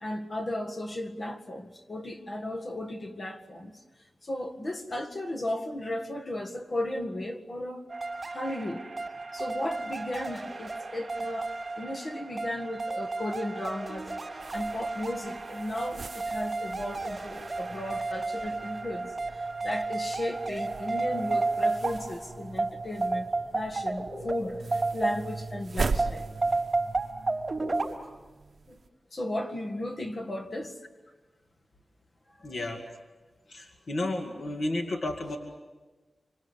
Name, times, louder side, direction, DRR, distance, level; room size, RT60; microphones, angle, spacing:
voice 1, 0.0-3.7 4.2-7.8 8.3-9.0 9.3-26.3 28.7-28.8 29.1-30.7 32.4-32.6, left 1 dB, 45° left, 1.9 m, -35 dB
sound 1, 7.9-25.5 26.0-27.9, right 3 dB, 20° right, 5.4 m, -32 dB
sound 2, 14.4-28.9, right 4 dB, 55° right, 1.0 m, -40 dB
voice 2, 32.4-32.8 33.5-35.4, left 2 dB, 60° left, 2.3 m, -32 dB
26.5 x 26.0 x 8.2 m
wide cardioid pair, 115°, 0 cm